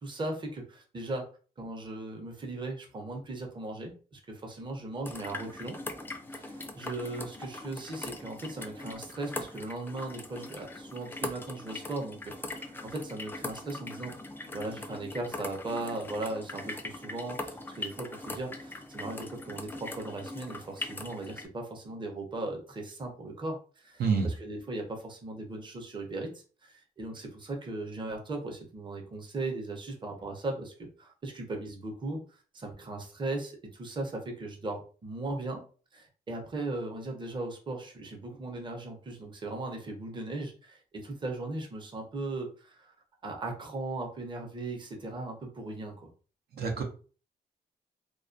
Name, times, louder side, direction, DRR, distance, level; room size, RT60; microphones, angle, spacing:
voice 1, 0.0-1.3 1.6-5.8 6.3-14.1 14.5-32.2 32.5-35.6 35.9-42.9 43.2-46.1, right 2 dB, 30° right, 2 dB, 0.6 m, -38 dB
sound 1, 5.1-21.5, left 2 dB, 15° left, 0.3 m, -41 dB
voice 2, 24.0-24.3 46.6-46.8, right 5 dB, 75° right, 2 dB, 0.6 m, -27 dB
2.2 x 2.2 x 2.5 m, 0.38 s
cardioid pair, 105°, 16 cm